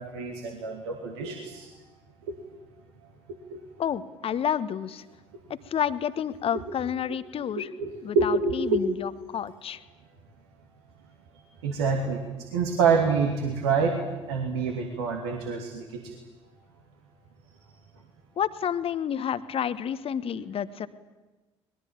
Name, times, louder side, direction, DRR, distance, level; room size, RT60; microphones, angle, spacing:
voice 1, 0.0-1.8 2.3-2.4 3.5-3.6 7.6-8.8 11.6-14.0 14.3-16.2, right 5 dB, 70° right, 2 dB, 2.5 m, -27 dB
voice 2, 3.8-5.0 5.5-7.7 8.0-9.8 18.4-20.9, left 8 dB, 40° left, 14 dB, 1.3 m, -30 dB
23.5 x 21.5 x 8.8 m, 1.2 s
figure-of-eight pair, 50°, 14 cm